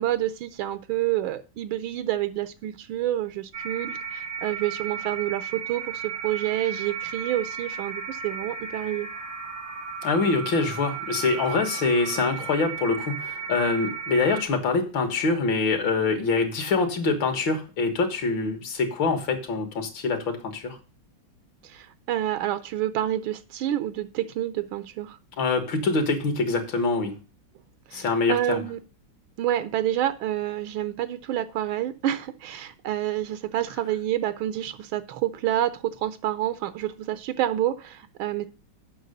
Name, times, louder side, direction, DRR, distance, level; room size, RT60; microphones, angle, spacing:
voice 1, 0.0-9.1 21.6-25.2 27.9-28.8 29.4-38.5, right 12 dB, 85° right, 11 dB, 1.5 m, -28 dB
sound 1, 3.5-14.4, right 7 dB, 50° right, 0.8 m, -35 dB
voice 2, 10.0-20.8 25.4-27.2 27.9-28.6, left 4 dB, 70° left, 6 dB, 2.1 m, -25 dB
8.0 x 5.6 x 6.5 m, 0.34 s
omnidirectional pair, 2.2 m